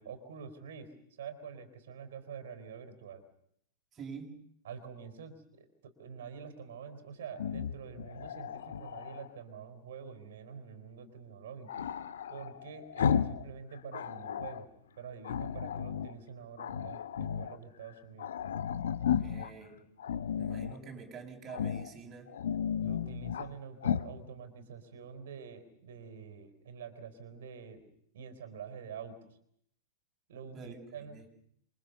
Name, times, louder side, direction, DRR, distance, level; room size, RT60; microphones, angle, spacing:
voice 1, 0.0-3.2 4.6-11.8 12.3-14.7 15.0-18.3 22.8-27.8 28.1-29.4 30.3-31.2, right 6 dB, 65° right, 11 dB, 4.3 m, -46 dB
voice 2, 3.9-4.4 19.2-19.8 20.4-22.3 30.5-31.3, right 5 dB, 25° right, 1 dB, 7.6 m, -46 dB
Growling, 7.3-9.3 11.7-13.5 13.7-14.6 15.2-16.1 16.6-17.6 17.9-18.0 18.2-19.5 20.0-20.8 21.5-21.9 22.3-23.5 23.8-24.1, left 8 dB, 70° left, 1.3 m, -34 dB
28.0 x 24.5 x 7.0 m, 0.71 s
figure-of-eight pair, 100°, 0 cm